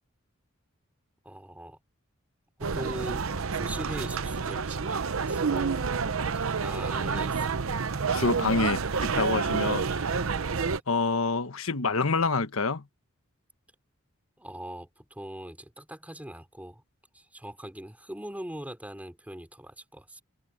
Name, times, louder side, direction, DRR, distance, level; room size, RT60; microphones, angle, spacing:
voice 1, 1.2-1.8 2.6-5.9 6.6-7.5 14.4-16.8 17.1-20.2, right 1 dB, 5° right, 3.3 m, -41 dB
sound 1, 2.6-10.8, right 5 dB, 75° right, 0.8 m, -29 dB
voice 2, 8.1-10.1 10.9-12.8, left 4 dB, 80° left, 1.3 m, -27 dB
head